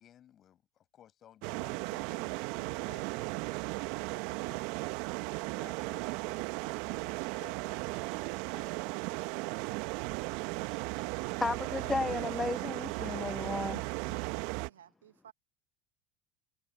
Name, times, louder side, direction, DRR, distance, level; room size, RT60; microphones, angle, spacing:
voice 1, 0.0-3.3 3.8-5.0 5.5-6.5 6.8-9.2, left 10 dB, 40° left, 7.5 m, -59 dB
sound 1, 1.4-14.7, right 27 dB, 60° right, 1.4 m, -36 dB
voice 2, 11.4-13.9, left 3 dB, 15° left, 0.3 m, -34 dB
voice 3, 13.7-15.3, right 10 dB, 80° right, 1.3 m, -56 dB
hypercardioid pair, 80°, 0 cm